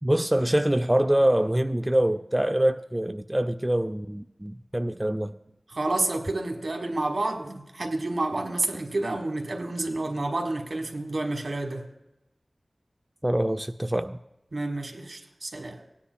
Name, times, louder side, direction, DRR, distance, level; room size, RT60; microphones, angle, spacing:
voice 1, 0.0-5.4 13.2-14.2, right 1 dB, 15° right, 0.3 m, -24 dB
voice 2, 5.7-11.9 14.5-15.8, right 2 dB, 70° right, 1.4 m, -29 dB
19.0 x 9.9 x 2.2 m
wide cardioid pair, 65°, 0 cm